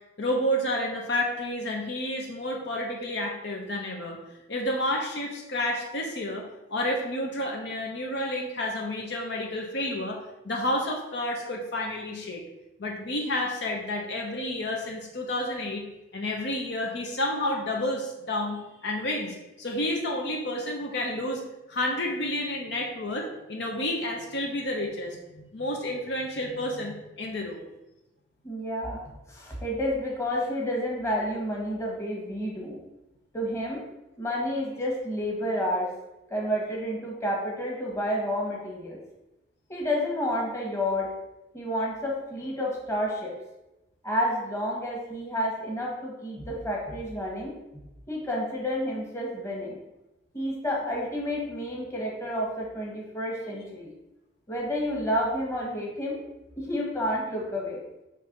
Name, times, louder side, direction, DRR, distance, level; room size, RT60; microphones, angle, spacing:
voice 1, 0.2-4.2 4.5-10.2 10.4-12.4 12.8-15.8 16.1-21.4 21.7-27.6, left 1 dB, 65° left, 0 dB, 0.9 m, -30 dB
voice 2, 28.4-29.0 29.3-32.8 33.3-33.8 34.2-35.9 36.3-39.0 39.7-41.1 41.5-43.3 44.0-47.5 48.1-49.8 50.3-53.9 54.5-56.2 56.5-57.8, equal, 15° left, -3 dB, 1.4 m, -30 dB
5.4 x 3.3 x 5.2 m, 0.97 s
head